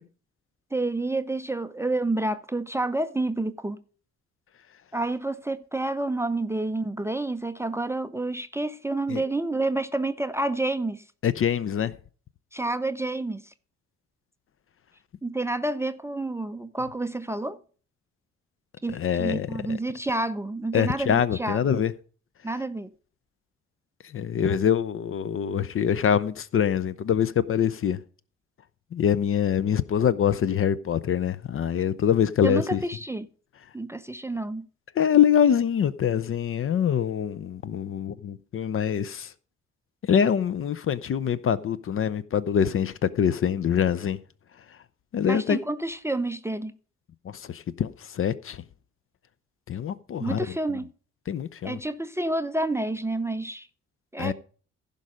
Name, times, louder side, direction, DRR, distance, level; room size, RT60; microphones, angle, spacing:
voice 1, 0.7-3.8 4.9-11.0 12.5-13.5 15.2-17.6 18.8-21.7 22.4-22.9 32.4-33.3 33.7-34.6 45.2-46.7 50.2-50.9 51.6-53.7 54.1-54.3, right 2 dB, 10° right, 0.6 m, -29 dB
voice 2, 11.2-11.9 18.9-19.8 20.7-21.9 24.0-28.0 28.9-32.8 34.9-39.3 40.0-44.2 44.7-44.8 45.1-45.6 47.2-48.6 49.7-50.5 51.3-51.8 54.2-54.3, left 8 dB, 40° left, 0.6 m, -24 dB
15.5 x 5.3 x 5.0 m
figure-of-eight pair, 40°, 35 cm